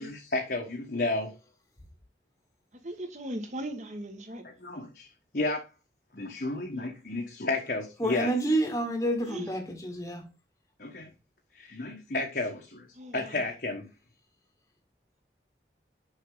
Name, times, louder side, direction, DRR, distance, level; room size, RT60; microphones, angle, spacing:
voice 1, 0.0-1.4 4.6-5.1 5.3-5.7 6.1-8.3 10.8-11.1 11.5-12.9 13.1-13.9, left 2 dB, 60° left, 1.2 m, -32 dB
voice 2, 2.7-4.4 6.7-6.9 9.2-9.6 12.9-13.4, right 1 dB, 40° right, 1.4 m, -39 dB
voice 3, 8.0-10.3, right 1 dB, 20° left, 1.2 m, -29 dB
6.5 x 5.5 x 3.8 m
head